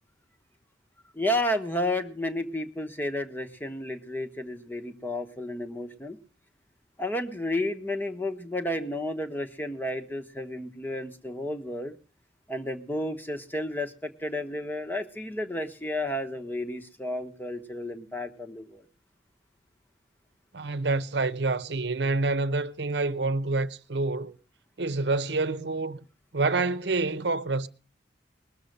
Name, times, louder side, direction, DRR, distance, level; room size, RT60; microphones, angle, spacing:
voice 1, 1.1-6.2 7.0-12.0 12.5-18.8, left 1 dB, 10° left, 1.1 m, -32 dB
voice 2, 20.5-24.3 24.8-26.0 26.3-27.7, right 3 dB, 70° right, 0.8 m, -27 dB
20.0 x 7.2 x 6.6 m
head